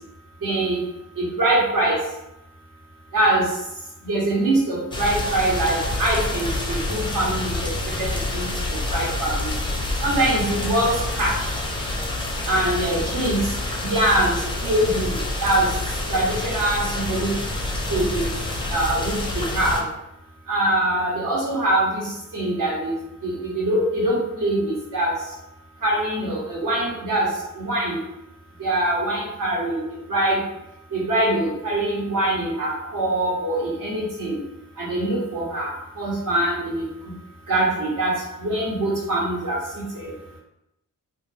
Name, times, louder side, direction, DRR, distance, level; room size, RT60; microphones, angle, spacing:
voice 1, 0.4-0.8 1.2-2.0 3.1-3.5 4.1-7.5 8.0-8.1 8.3-8.5 8.9-9.5 10.0-11.4 12.5-13.4 13.8-15.1 15.4-15.7 16.1-17.3 17.9-18.3 18.7-19.8 20.5-22.0 22.3-22.9 23.2-25.1 25.8-27.3 27.6-28.0 28.6-29.8 30.1-30.4 30.9-34.4 34.8-36.8 37.5-39.6 40.0-40.1, right 1 dB, 65° right, -4 dB, 1.1 m, -23 dB
sound 1, 4.9-19.8, left 2 dB, 15° left, 0.4 m, -27 dB
2.3 x 2.2 x 3.3 m, 0.87 s
wide cardioid pair, 105°, 34 cm